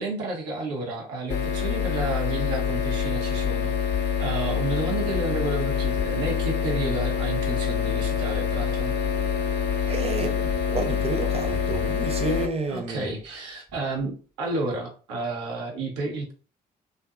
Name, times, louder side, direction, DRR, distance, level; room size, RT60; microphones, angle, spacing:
voice 1, 0.0-3.8 4.2-8.9 12.7-16.3, right 3 dB, 80° right, 0.7 m, -31 dB
sound 1, 1.3-12.5, left 7 dB, 55° left, 0.6 m, -26 dB
voice 2, 9.9-13.1, right 3 dB, 30° right, 0.7 m, -30 dB
2.6 x 2.5 x 2.3 m
hypercardioid pair, 40°, 21 cm